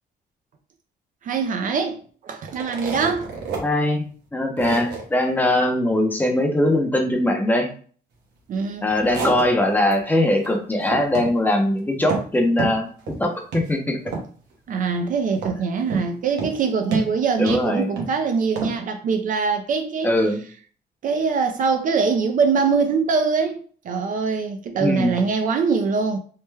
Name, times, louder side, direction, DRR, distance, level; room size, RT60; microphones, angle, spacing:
voice 1, 1.2-3.3 8.5-8.9 14.7-20.2 21.0-26.2, right 5 dB, 50° right, 0.4 m, -23 dB
sound 1, 2.5-3.6 4.0-4.1 4.6-5.0 8.7-10.0 10.3-10.5 10.8-11.4 11.6-12.3 12.6-13.2 13.5-13.7 14.1-14.5 15.4-16.1 16.4-16.6 16.9-18.1 18.6-18.7, right 4 dB, 75° right, 1.0 m, -29 dB
voice 2, 3.6-4.0 4.3-7.7 8.8-12.9 13.2-14.0 17.4-17.9 20.0-20.4 24.8-25.2, left 1 dB, 10° left, 0.5 m, -21 dB
3.2 x 2.1 x 3.2 m
cardioid pair, 150°, 18 cm